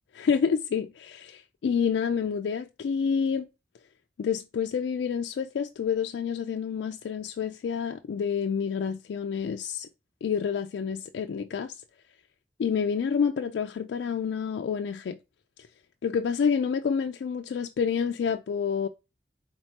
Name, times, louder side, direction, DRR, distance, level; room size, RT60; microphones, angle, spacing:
voice 1, 0.1-3.5 4.2-9.9 10.2-11.8 12.6-15.2 16.0-18.9, left 6 dB, 85° left, 0.3 m, -28 dB
4.4 x 4.0 x 2.8 m
head